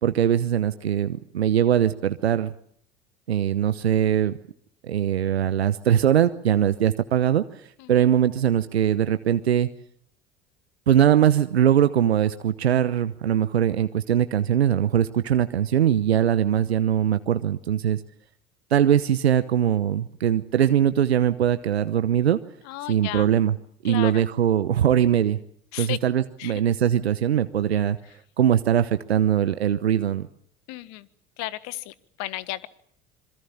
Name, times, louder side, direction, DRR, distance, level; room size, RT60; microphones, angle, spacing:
voice 1, 0.0-2.5 3.3-4.4 4.8-7.4 7.9-9.7 10.9-18.0 18.7-22.4 22.9-23.5 23.8-25.4 25.8-28.0 28.4-30.3, right 10 dB, 90° right, 12 dB, 0.9 m, -21 dB
voice 2, 22.6-23.3 23.9-24.2 25.7-26.0 26.4-26.6 30.7-31.1 31.4-32.7, left 17 dB, 60° left, 16 dB, 1.6 m, -34 dB
27.0 x 22.5 x 7.1 m, 0.64 s
hypercardioid pair, 75°, 31 cm